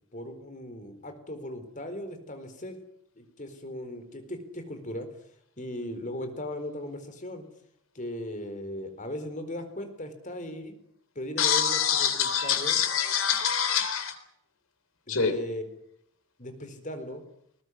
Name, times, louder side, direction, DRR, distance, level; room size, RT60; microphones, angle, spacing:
voice 1, 0.1-2.8 3.2-5.1 5.6-7.4 7.9-10.8 11.1-12.8 15.1-15.7 16.4-17.2, left 1 dB, 35° left, 8 dB, 4.3 m, -38 dB
voice 2, 11.4-14.2 15.1-15.3, left 7 dB, 75° left, 10 dB, 4.0 m, -25 dB
20.5 x 20.0 x 9.8 m, 0.72 s
head